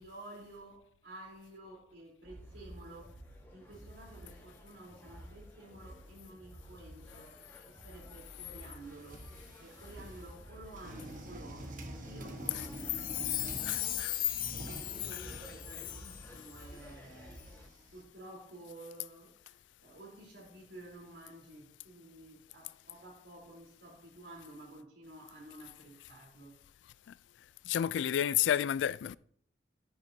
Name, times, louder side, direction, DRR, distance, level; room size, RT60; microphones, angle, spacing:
voice 1, 0.0-3.2 3.5-7.4 7.7-9.3 9.6-17.4 17.9-26.6, right 1 dB, 90° right, 3.7 m, -52 dB
sound 1, 2.2-17.7, equal, 15° left, 1.6 m, -52 dB
sound 2, 8.8-10.4 10.8-13.9 14.2-18.0, right 1 dB, 50° right, 1.3 m, -48 dB
Chime, 12.6-16.3 16.5-16.6, left 13 dB, 55° left, 0.6 m, -37 dB
voice 2, 13.7-14.1 15.1-15.5 27.6-29.2, left 10 dB, 85° left, 0.3 m, -31 dB
12.0 x 9.6 x 2.8 m
head